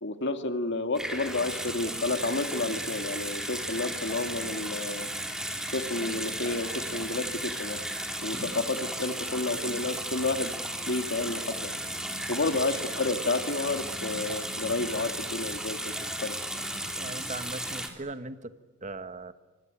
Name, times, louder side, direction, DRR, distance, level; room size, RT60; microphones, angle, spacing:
voice 1, 0.0-5.1 5.7-7.8 8.2-10.5 10.9-11.7 12.3-15.8 16.2-16.4, left 2 dB, 55° left, 7 dB, 2.2 m, -30 dB
Water tap faucet / Sink (filling or washing) / Bathtub (filling or washing), 0.9-17.9, right 1 dB, 5° right, 3.4 m, -35 dB
voice 2, 17.0-18.5 18.8-19.3, right 3 dB, 35° right, 11 dB, 1.2 m, -39 dB
24.5 x 24.5 x 9.1 m, 1.3 s
head